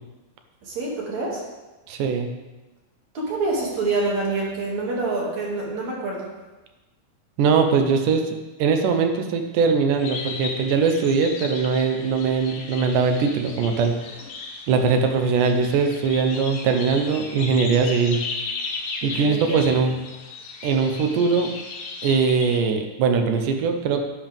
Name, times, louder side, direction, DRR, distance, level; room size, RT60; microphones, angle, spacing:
voice 1, 0.6-1.4 3.1-6.3 19.0-19.6, right 3 dB, 50° right, -4 dB, 3.3 m, -26 dB
voice 2, 1.9-2.3 7.4-8.3 8.6-14.0 14.7-18.2 19.0-20.0 20.6-21.5 22.0-24.0, right 5 dB, 75° right, 5 dB, 2.0 m, -21 dB
sound 1, 10.0-22.6, left 4 dB, 60° left, 1.9 m, -35 dB
11.0 x 11.0 x 3.6 m, 1.1 s
omnidirectional pair, 4.7 m